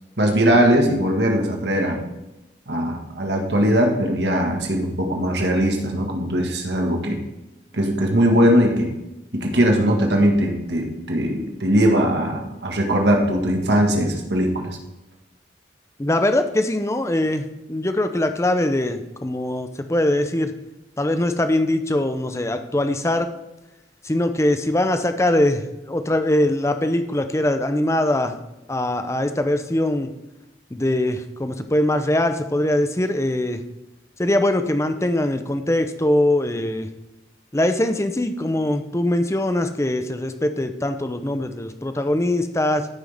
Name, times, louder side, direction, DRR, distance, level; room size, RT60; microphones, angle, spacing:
voice 1, 0.2-2.0 2.7-7.2 7.7-8.9 9.3-14.8, equal, 70° right, 2 dB, 1.7 m, -20 dB
voice 2, 16.0-20.5 21.0-23.3 24.0-28.4 28.7-30.1 30.7-33.6 34.2-36.9 37.5-42.9, left 1 dB, 15° left, 8 dB, 0.6 m, -22 dB
14.0 x 6.1 x 3.5 m, 0.98 s
head